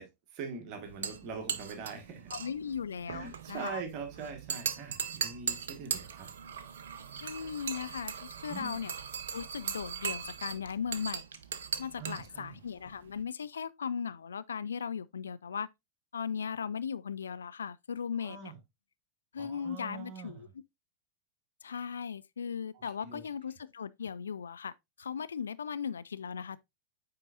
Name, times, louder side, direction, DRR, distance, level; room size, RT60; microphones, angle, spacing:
voice 1, 0.0-2.3 3.1-6.3 8.5-8.8 12.0-12.6 18.2-18.6 19.4-20.5 22.7-23.2, right 5 dB, 40° right, 1.6 m, -43 dB
sound 1, 0.8-13.2, right 7 dB, 65° right, 0.6 m, -39 dB
voice 2, 2.3-3.8 7.2-8.9 9.3-11.2 11.8-15.7 16.1-18.5 19.3-20.5 21.6-24.7 25.0-26.6, left 7 dB, 70° left, 0.3 m, -37 dB
8.4 x 4.5 x 2.5 m
figure-of-eight pair, 90°, 0 cm